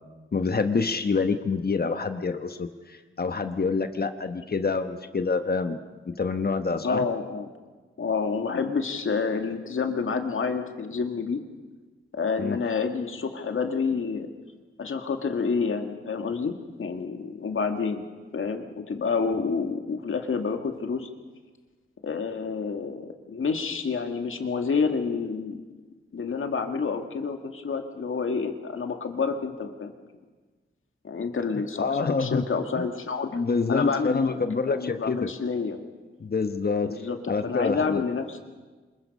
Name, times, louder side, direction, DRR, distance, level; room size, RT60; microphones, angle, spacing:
voice 1, 0.3-5.8 6.1-7.0 12.4-12.6 31.8-32.4 32.7-32.9 33.3-35.3 36.2-36.9 37.3-38.0, left 4 dB, 45° left, 8 dB, 1.2 m, -27 dB
voice 2, 6.8-7.5 8.0-11.4 12.1-14.3 14.8-18.0 18.3-21.1 22.0-25.6 26.1-29.9 31.0-33.4 33.7-34.3 34.7-35.8 36.9-38.4, left 5 dB, 75° left, 5 dB, 2.1 m, -28 dB
26.0 x 21.5 x 5.5 m, 1.4 s
wide cardioid pair, 85°, 21 cm